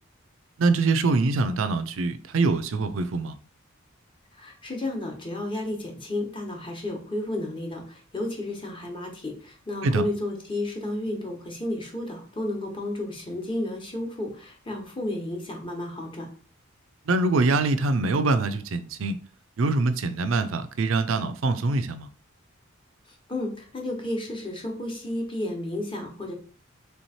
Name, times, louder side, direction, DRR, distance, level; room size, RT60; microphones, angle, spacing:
voice 1, 0.6-3.3 9.8-10.0 17.1-19.2 19.6-22.1, right 3 dB, 70° right, 0.5 m, -24 dB
voice 2, 4.4-16.3 23.3-26.3, left 1 dB, 25° left, 1.0 m, -32 dB
3.4 x 3.1 x 4.2 m
head